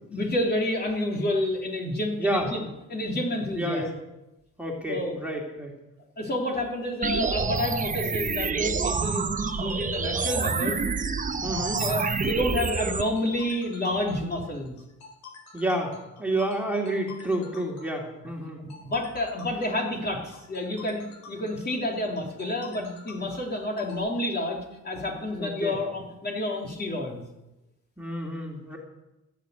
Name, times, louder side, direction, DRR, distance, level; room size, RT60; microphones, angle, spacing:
voice 1, 0.1-3.8 4.9-5.2 6.2-10.8 11.8-14.7 18.8-27.2, left 1 dB, 35° left, -1 dB, 3.4 m, -29 dB
voice 2, 2.2-2.5 3.5-4.0 4.6-5.7 11.4-11.8 15.5-18.6 25.4-25.8 28.0-28.8, right 1 dB, 5° right, -1 dB, 2.9 m, -29 dB
sound 1, 7.0-13.0, right 5 dB, 25° right, 0.9 m, -27 dB
sound 2, 9.2-24.0, left 5 dB, 65° left, 3.8 m, -48 dB
15.5 x 6.9 x 8.1 m, 0.94 s
cardioid pair, 90°, 30 cm